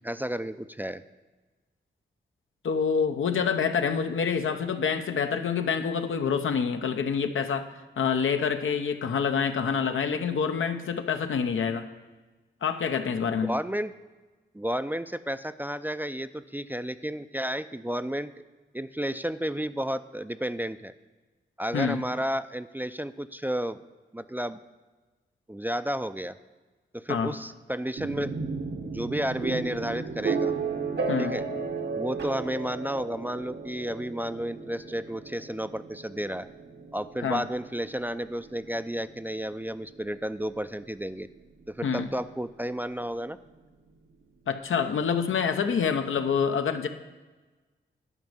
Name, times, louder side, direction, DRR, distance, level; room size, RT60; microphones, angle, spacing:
voice 1, 0.0-1.0 13.4-13.9 14.5-18.3 18.7-20.9 21.6-23.8 24.1-24.6 25.5-26.3 26.9-28.4 28.8-30.5 31.2-31.4 31.9-36.5 36.9-41.3 41.7-43.4, equal, 10° right, 12 dB, 0.3 m, -32 dB
voice 2, 2.6-7.7 8.0-11.9 12.6-13.6 21.7-22.0 27.1-27.4 31.1-31.4 37.2-37.4 41.8-42.1 44.5-46.9, left 6 dB, 85° left, 7 dB, 0.7 m, -27 dB
sound 1, 28.0-41.7, right 4 dB, 60° right, 0.9 m, -34 dB
11.0 x 5.2 x 7.3 m, 1.3 s
cardioid pair, 75°, 20 cm